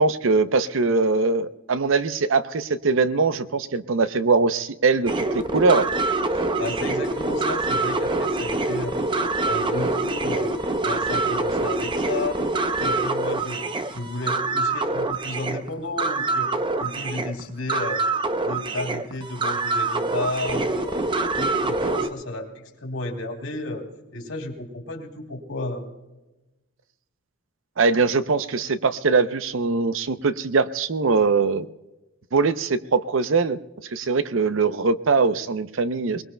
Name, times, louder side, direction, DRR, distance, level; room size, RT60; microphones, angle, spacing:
voice 1, 0.0-5.9 27.8-31.7 32.3-33.6 33.9-36.2, right 4 dB, 65° right, 13 dB, 0.6 m, -22 dB
sound 1, 5.1-22.1, right 2 dB, 25° right, 0.6 m, -25 dB
voice 2, 6.3-9.0 9.4-12.4 12.7-13.6 13.9-16.5 16.8-18.1 18.4-23.8 24.1-25.8, left 2 dB, 85° left, 2 dB, 2.9 m, -32 dB
23.5 x 21.0 x 2.2 m, 1.0 s
head